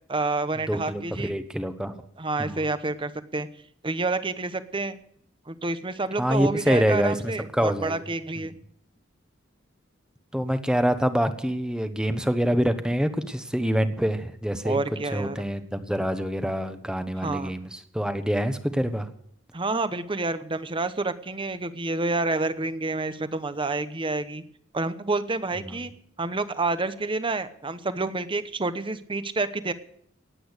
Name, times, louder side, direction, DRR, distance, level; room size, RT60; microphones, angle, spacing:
voice 1, 0.1-1.3 2.2-3.5 3.8-5.0 5.5-8.5 14.6-15.4 17.2-17.5 19.5-24.4 24.7-25.9 26.2-29.7, right 3 dB, 25° right, 12 dB, 0.9 m, -28 dB
voice 2, 0.7-2.0 2.4-2.6 6.2-8.0 8.4-8.6 10.3-14.8 15.1-19.1 25.6-25.7, equal, 5° right, 9 dB, 1.1 m, -26 dB
18.0 x 8.6 x 8.1 m, 0.68 s
head